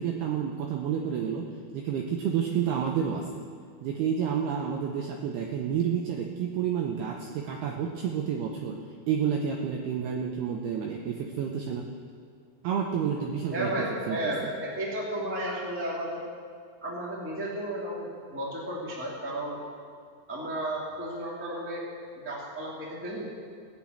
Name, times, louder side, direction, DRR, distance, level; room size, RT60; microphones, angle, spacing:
voice 1, 0.0-1.5 1.7-3.4 3.8-8.8 9.1-11.9 12.6-13.7 14.1-14.3, right 7 dB, 80° right, 2 dB, 2.3 m, -30 dB
voice 2, 13.5-16.2 16.8-19.6 20.3-21.8 22.1-23.3, right 1 dB, 5° right, -5 dB, 0.8 m, -33 dB
18.0 x 6.1 x 8.6 m, 2.1 s
omnidirectional pair, 5.6 m